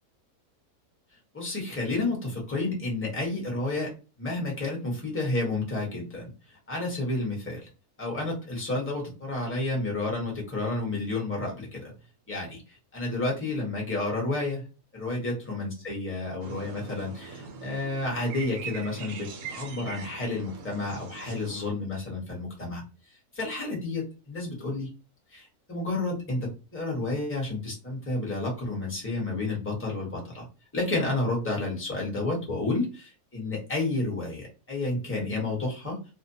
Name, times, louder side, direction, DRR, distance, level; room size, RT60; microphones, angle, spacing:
voice 1, 1.3-6.3 6.7-7.7 8.0-11.9 12.3-12.6 12.9-14.6 14.9-22.8 23.3-24.9 25.3-30.4 30.7-36.0, left 2 dB, 10° left, -2 dB, 0.8 m, -31 dB
sound 1, 16.4-21.7, right 5 dB, 75° right, 1.1 m, -42 dB
2.6 x 2.1 x 2.6 m, 0.32 s
omnidirectional pair, 1.6 m